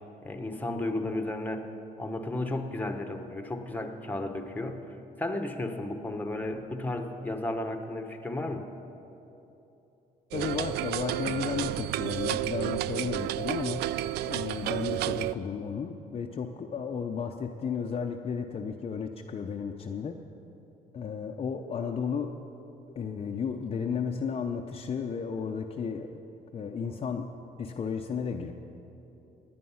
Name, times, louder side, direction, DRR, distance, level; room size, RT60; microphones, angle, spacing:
voice 1, 0.2-1.7 2.0-4.8 5.2-8.7, left 2 dB, 10° left, 5 dB, 1.1 m, -33 dB
voice 2, 10.3-13.8 14.2-20.2 20.9-22.4 22.9-26.2 26.5-28.5, left 6 dB, 35° left, 3 dB, 0.7 m, -33 dB
sound 1, 10.3-15.3, right 14 dB, 75° right, 0.4 m, -31 dB
17.5 x 10.5 x 5.7 m, 3.0 s
cardioid pair, 110°, 17 cm